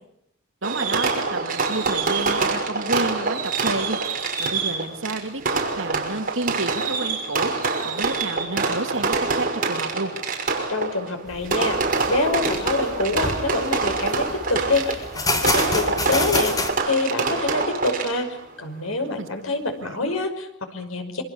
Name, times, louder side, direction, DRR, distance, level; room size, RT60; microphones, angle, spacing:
Fireworks, 0.6-18.4, right 4 dB, 40° right, 5.9 m, -25 dB
voice 1, 0.6-4.0 4.4-7.5 7.8-10.1 19.2-19.3 19.8-20.1, right 2 dB, 70° right, 6 dB, 2.5 m, -30 dB
voice 2, 10.7-11.8 12.1-18.3 18.6-21.2, left 2 dB, 85° left, 7 dB, 5.5 m, -26 dB
sound 1, 11.3-16.7, left 2 dB, 20° left, 3.6 m, -28 dB
27.0 x 25.5 x 7.1 m, 0.78 s
head